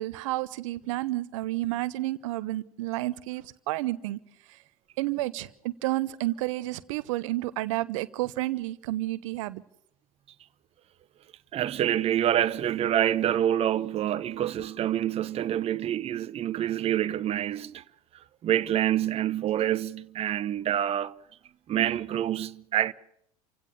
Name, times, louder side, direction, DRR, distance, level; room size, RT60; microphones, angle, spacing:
voice 1, 0.0-4.2 4.5-4.6 5.0-9.6, right 17 dB, 60° right, 0.8 m, -31 dB
voice 2, 11.5-17.8 18.4-21.1 21.7-22.9, right 11 dB, 35° right, 0.9 m, -27 dB
28.5 x 16.5 x 6.8 m
figure-of-eight pair, 75°, 18 cm